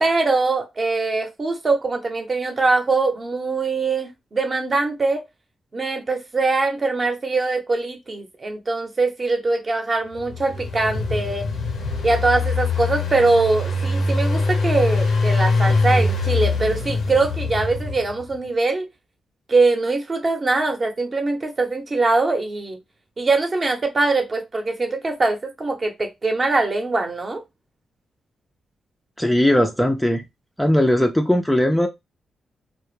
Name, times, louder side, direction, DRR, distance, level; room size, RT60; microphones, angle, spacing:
voice 1, 0.0-5.2 5.7-11.5 12.0-18.9 19.5-22.8 23.2-27.4, right 3 dB, 40° right, 0.7 m, -22 dB
Engine, 10.2-18.2, left 3 dB, 80° left, 0.6 m, -23 dB
voice 2, 29.2-30.2 30.6-31.9, left 1 dB, 5° left, 0.4 m, -18 dB
2.1 x 2.0 x 3.1 m
cardioid pair, 75°, 0 cm